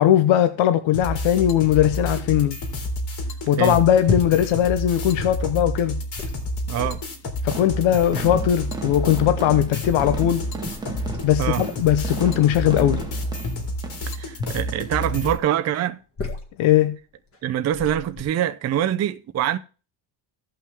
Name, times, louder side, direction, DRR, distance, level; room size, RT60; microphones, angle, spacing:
voice 1, 0.0-2.6 3.5-6.0 7.4-10.5 11.2-13.0 16.6-17.0, left 11 dB, 85° left, 0.9 m, -19 dB
sound 1, 0.9-15.4, left 1 dB, 60° left, 2.8 m, -29 dB
sound 2, 4.0-4.7 5.0-5.8 6.1-6.4 6.8-7.1 7.8-8.7 9.4-10.2 10.6-11.4 11.8-12.1 12.9-13.7 14.3-15.3 15.9-16.6 17.3-17.4 17.7-18.2, left 3 dB, 30° left, 1.8 m, -33 dB
voice 2, 6.7-7.0 11.4-11.6 14.2-16.0 17.4-19.6, right 11 dB, 35° right, 0.5 m, -24 dB
sound 3, 7.5-15.1, right 3 dB, 10° right, 1.0 m, -36 dB
16.0 x 5.6 x 3.5 m
cardioid pair, 160°, 46 cm